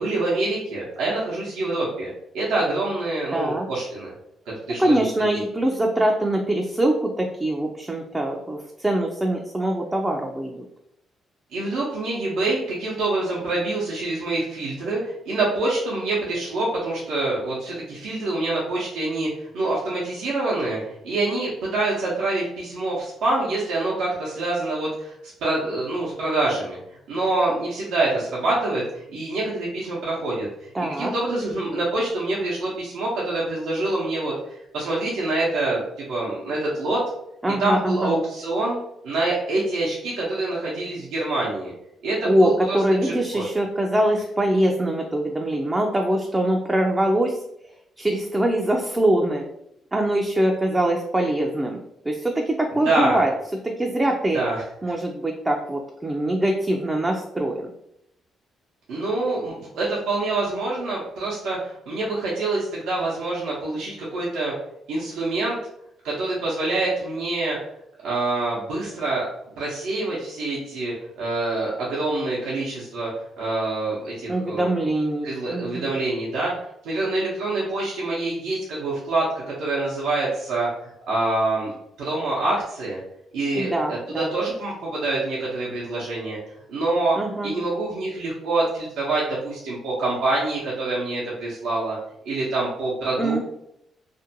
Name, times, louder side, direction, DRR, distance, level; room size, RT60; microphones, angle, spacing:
voice 1, 0.0-2.1 2.3-4.1 4.7-5.0 11.5-25.1 25.4-26.8 27.1-30.5 31.0-37.0 37.6-38.8 39.0-41.7 42.0-43.4 52.8-53.2 54.3-54.6 58.9-64.5 64.9-65.6 66.0-67.6 68.0-69.3 69.6-73.1 73.4-74.7 75.2-76.5 76.8-81.7 82.0-83.0 83.3-86.4 86.7-87.2 87.4-92.0 92.2-93.4, right 2 dB, 85° right, -6 dB, 0.6 m, -26 dB
voice 2, 3.3-3.7 4.8-10.6 30.7-31.1 37.4-38.2 42.2-47.4 48.0-49.4 49.9-51.8 52.0-53.3 53.6-54.4 54.8-57.7 74.3-75.9 83.5-84.3 87.2-87.6 93.2-93.4, right 1 dB, 15° right, 1 dB, 0.3 m, -23 dB
2.5 x 2.1 x 2.7 m, 0.78 s
cardioid pair, 90°, 0 cm